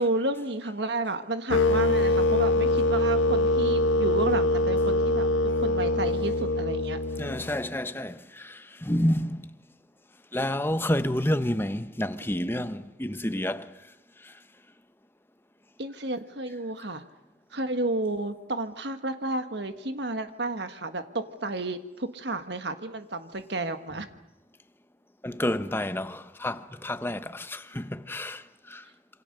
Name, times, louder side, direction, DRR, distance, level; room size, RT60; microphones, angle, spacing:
voice 1, 0.0-5.3 5.6-7.0 15.8-17.0 17.5-24.1, right 2 dB, 60° right, 1.6 m, -31 dB
sound 1, 1.5-7.6, left 2 dB, 80° left, 1.6 m, -24 dB
voice 2, 7.2-9.5 10.3-13.7 14.2-14.3 25.2-28.8, left 1 dB, 10° left, 0.9 m, -29 dB
27.5 x 26.5 x 6.7 m
head